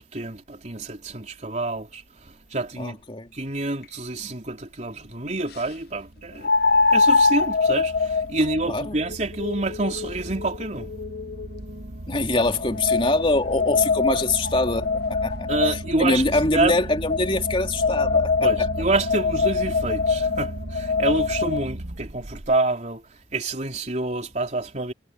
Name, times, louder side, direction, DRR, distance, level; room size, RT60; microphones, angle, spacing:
voice 1, 0.1-3.0 3.3-6.5 6.9-10.9 15.5-16.2 16.5-16.8 18.4-24.9, right 2 dB, 40° right, 3.8 m, -27 dB
voice 2, 2.8-3.3 8.7-9.0 12.1-15.5 16.0-18.3, left 2 dB, 30° left, 3.2 m, -23 dB
sound 1, 3.8-3.9 6.4-11.6 12.3-16.0 17.1-21.7, left 4 dB, 60° left, 0.5 m, -24 dB
sound 2, 5.1-22.6, right 1 dB, 60° right, 1.2 m, -36 dB
head